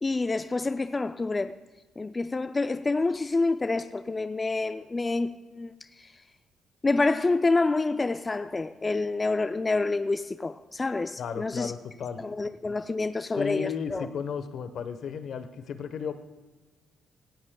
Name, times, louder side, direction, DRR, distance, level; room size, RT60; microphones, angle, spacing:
voice 1, 0.0-1.5 2.0-5.7 6.0-6.1 6.8-11.7 12.2-14.1, left 3 dB, 25° left, 0.4 m, -27 dB
voice 2, 11.2-12.2 13.4-16.1, left 7 dB, 65° left, 1.0 m, -34 dB
17.5 x 16.0 x 2.3 m
cardioid pair, 90°, 0 cm